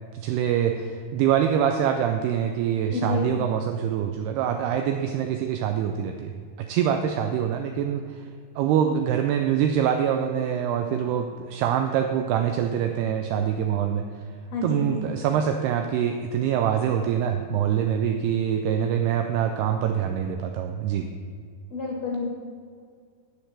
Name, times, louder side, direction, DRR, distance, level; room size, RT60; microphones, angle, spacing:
voice 1, 0.1-6.3 6.6-8.3 8.6-14.1 14.6-21.1, right 9 dB, 80° right, 5 dB, 2.4 m, -25 dB
voice 2, 2.9-3.3 14.5-15.0 21.7-22.3, left 3 dB, 50° left, -1 dB, 2.5 m, -29 dB
10.0 x 7.5 x 6.6 m, 2.1 s
omnidirectional pair, 5.0 m